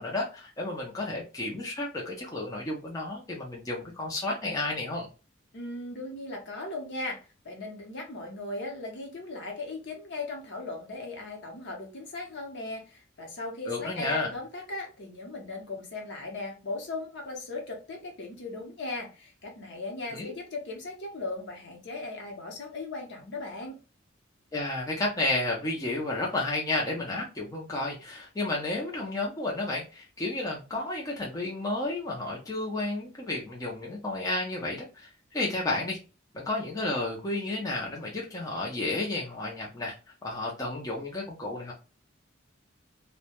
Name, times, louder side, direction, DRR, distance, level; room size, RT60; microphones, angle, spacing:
voice 1, 0.0-5.1 13.7-14.3 20.1-20.3 24.5-36.0 36.3-39.9 40.2-41.7, left 2 dB, 20° left, -3 dB, 0.5 m, -32 dB
voice 2, 5.5-23.8, left 2 dB, 60° left, 1 dB, 0.8 m, -38 dB
2.2 x 2.1 x 2.8 m, 0.31 s
head